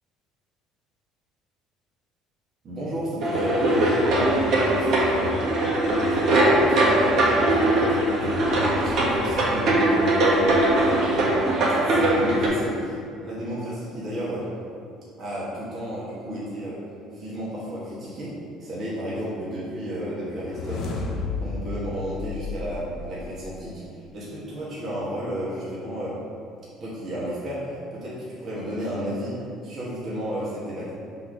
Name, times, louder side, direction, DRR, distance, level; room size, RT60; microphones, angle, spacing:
voice 1, 2.6-5.4 5.9-8.4 8.8-11.4 11.7-13.0 13.2-14.5 15.2-16.8 17.1-23.8 24.1-26.2 26.8-30.9, equal, 40° right, -8 dB, 1.6 m, -32 dB
sound 1, 3.2-12.5, right 1 dB, 60° right, 1.4 m, -21 dB
sound 2, 20.2-23.5, left 4 dB, 55° left, 0.9 m, -33 dB
5.5 x 4.2 x 5.1 m, 2.4 s
cardioid pair, 115°, 0 cm